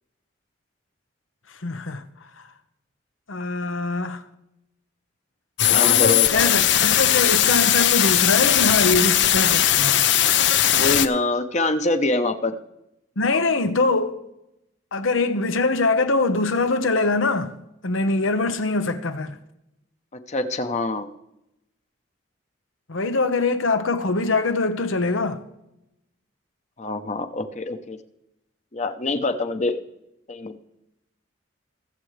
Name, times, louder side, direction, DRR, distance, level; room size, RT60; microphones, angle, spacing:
voice 1, 1.6-2.0 3.3-4.2 5.7-10.0 13.2-14.2 14.9-17.5 17.8-19.4 22.9-25.4, left 3 dB, 90° left, 1.0 m, -23 dB
sound 1, 5.6-11.1, left 11 dB, 65° left, 0.6 m, -18 dB
voice 2, 5.7-6.5 10.7-12.6 20.3-21.1 26.8-28.0 28.7-29.8 30.3-30.6, left 2 dB, 35° left, 0.8 m, -25 dB
22.5 x 7.6 x 3.3 m
head